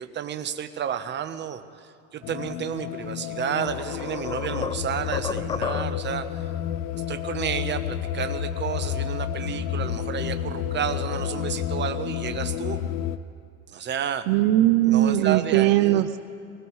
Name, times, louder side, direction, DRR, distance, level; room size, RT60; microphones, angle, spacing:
voice 1, 0.0-6.5 6.9-12.8 13.7-14.3 14.8-16.0, right 8 dB, 35° right, 9 dB, 1.0 m, -31 dB
sound 1, 2.2-13.2, left 10 dB, 70° left, 0.6 m, -30 dB
sound 2, 3.0-3.1 3.6-6.2, left 6 dB, 15° left, 0.3 m, -33 dB
voice 2, 14.3-16.2, right 14 dB, 70° right, 10 dB, 0.6 m, -19 dB
21.0 x 20.0 x 3.2 m, 2.3 s
supercardioid pair, 105°, 33 cm